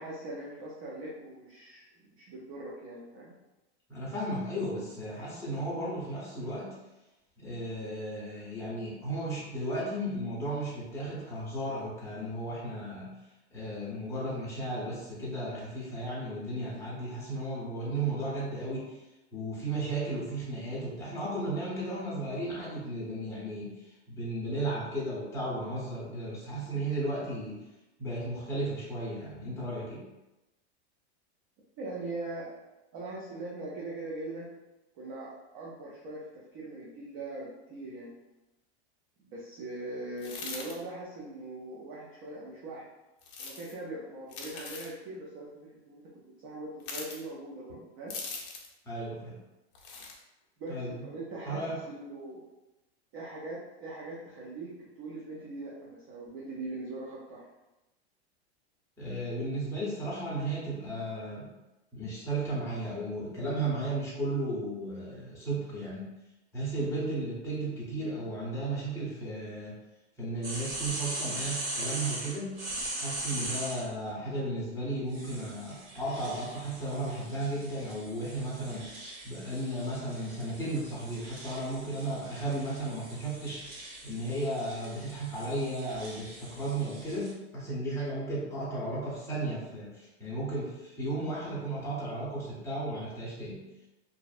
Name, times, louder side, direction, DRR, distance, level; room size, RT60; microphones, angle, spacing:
voice 1, 0.0-1.8 2.2-3.3 31.8-32.5 32.9-34.5 34.9-38.1 39.2-42.9 43.4-45.5 45.9-46.0 46.4-48.1 50.6-52.4 53.1-54.7 55.0-57.5, right 2 dB, 30° right, -5 dB, 0.4 m, -41 dB
voice 2, 3.9-6.8 7.4-13.1 13.5-19.0 19.3-27.6 28.0-30.0 48.8-49.4 50.7-51.1 51.4-51.8 59.0-61.5 61.9-66.1 66.5-69.7 70.2-72.6 73.0-78.9 79.2-93.6, right 1 dB, 10° left, -7 dB, 0.7 m, -34 dB
sound 1, 40.2-40.8 43.2-43.7 44.3-44.9 46.8-47.2 48.1-48.7 49.8-50.2, left 4 dB, 50° left, 0.6 m, -40 dB
sound 2, 70.4-73.9 75.1-87.3, right 1 dB, 75° right, 1.3 m, -41 dB
2.5 x 2.1 x 2.3 m, 1.0 s
supercardioid pair, 140°, 33 cm